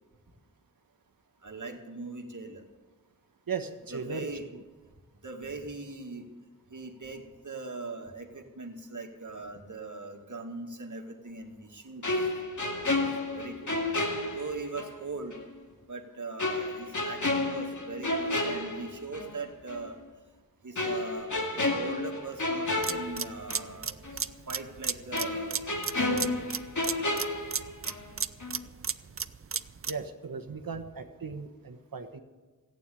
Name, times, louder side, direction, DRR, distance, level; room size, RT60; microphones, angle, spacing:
voice 1, 1.4-2.6 3.9-4.4 5.2-6.2 6.7-12.3 13.0-13.7 14.3-15.3 15.9-19.9 20.6-24.0 24.5-25.6 26.1-26.5, right 3 dB, 60° right, 2 dB, 2.2 m, -40 dB
voice 2, 3.5-4.6 29.9-32.2, right 5 dB, 85° right, 7 dB, 1.4 m, -37 dB
sound 1, 12.0-15.0 15.3-15.4 16.4-19.4 19.7-19.9 20.8-23.8 24.0-24.2 25.1-28.1 28.4-28.6, left 2 dB, 60° left, 2.3 m, -31 dB
sound 2, 22.8-30.1, right 6 dB, 40° right, 0.6 m, -35 dB
14.5 x 9.4 x 8.5 m, 1.3 s
wide cardioid pair, 70°, 34 cm